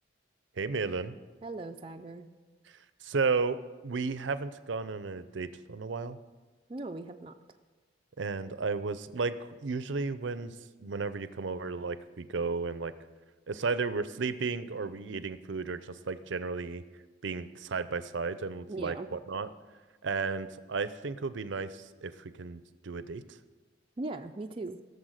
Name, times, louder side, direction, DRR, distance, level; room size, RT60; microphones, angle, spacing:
voice 1, 0.6-1.1 3.0-3.6 3.8-6.2 8.2-10.5 10.8-12.9 13.5-16.8 17.2-19.5 20.0-23.4, right 4 dB, 80° right, 13 dB, 0.6 m, -33 dB
voice 2, 1.4-2.3 6.7-7.3 18.7-19.1 24.0-24.8, right 2 dB, 30° right, 4 dB, 0.4 m, -39 dB
16.5 x 6.8 x 6.5 m, 1.3 s
head